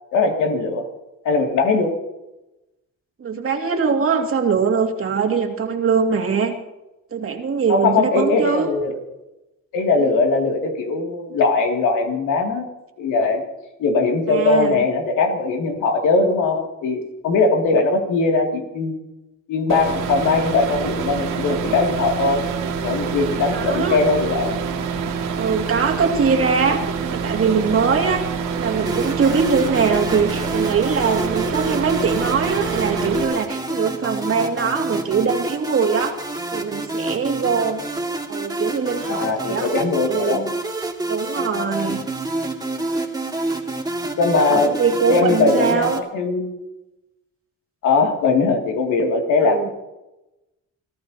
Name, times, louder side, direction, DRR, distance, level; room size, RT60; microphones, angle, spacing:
voice 1, 0.1-0.9 1.2-2.0 7.7-9.0 9.7-12.7 13.0-13.4 13.8-19.0 19.5-22.4 22.8-24.6 39.1-40.4 41.5-41.9 44.2-44.8 45.1-46.6 47.8-49.7, left 3 dB, 90° left, 2 dB, 2.6 m, -20 dB
voice 2, 3.2-6.5 7.1-8.7 14.3-14.8 23.5-24.0 25.4-28.2 28.5-36.2 36.5-37.8 38.3-39.7 40.1-40.5 41.1-42.0 44.5-46.0 49.4-49.7, right 5 dB, 45° right, 2 dB, 2.4 m, -22 dB
sound 1, 19.7-33.2, right 6 dB, 85° right, 2.2 m, -26 dB
sound 2, 28.9-46.0, right 2 dB, 15° right, 2.1 m, -28 dB
23.5 x 14.5 x 2.9 m, 0.98 s
cardioid pair, 90°, 30 cm